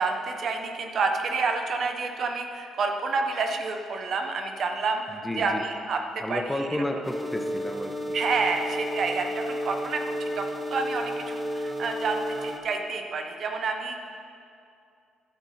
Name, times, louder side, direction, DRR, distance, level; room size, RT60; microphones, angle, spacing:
voice 1, 0.0-6.7 8.1-14.0, right 4 dB, 60° right, 4 dB, 1.1 m, -29 dB
voice 2, 5.1-5.7 6.2-8.2, left 1 dB, 10° left, 5 dB, 0.8 m, -32 dB
sound 1, 7.0-12.6, equal, 10° right, 1.2 m, -32 dB
11.0 x 8.0 x 5.8 m, 2.5 s
cardioid pair, 90°, 0 cm